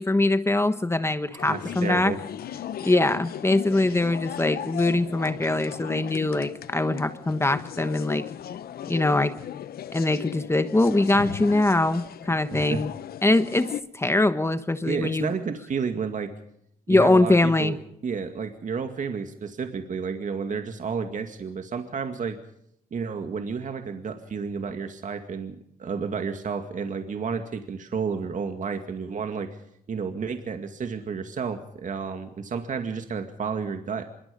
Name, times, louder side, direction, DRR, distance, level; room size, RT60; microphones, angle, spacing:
voice 1, 0.0-2.1 2.8-8.2 8.9-9.3 9.9-12.9 13.2-15.3 16.9-17.7, left 2 dB, 15° left, 10 dB, 1.3 m, -22 dB
sound 1, 1.4-13.8, left 10 dB, 85° left, 1.0 m, -37 dB
voice 2, 1.5-2.2 12.5-12.8 14.8-16.3 16.9-17.8 18.0-22.4 22.9-29.5 29.9-34.1, right 5 dB, 55° right, 6 dB, 2.2 m, -31 dB
25.5 x 23.0 x 5.3 m, 0.74 s
cardioid pair, 95°, 15 cm